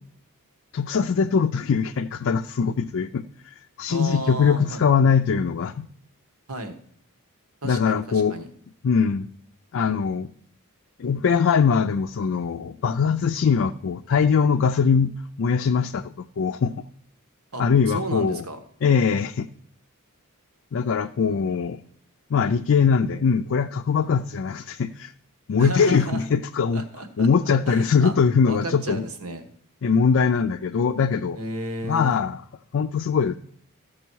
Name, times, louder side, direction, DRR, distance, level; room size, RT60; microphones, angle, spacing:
voice 1, 0.7-5.9 7.6-8.4 8.8-9.3 9.7-10.3 11.0-15.1 15.4-16.7 17.6-18.4 18.8-19.5 20.7-21.8 22.3-25.1 25.5-26.8 27.2-29.0 29.8-31.4 31.8-32.4 32.7-33.4, left 6 dB, 60° left, 6 dB, 0.4 m, -22 dB
voice 2, 3.9-4.8 6.5-6.8 7.6-8.5 17.5-18.6 25.6-26.3 26.7-27.3 27.7-28.2 28.5-29.4 31.3-32.2, right 1 dB, 70° right, 7 dB, 1.3 m, -33 dB
14.5 x 6.1 x 4.6 m, 0.63 s
head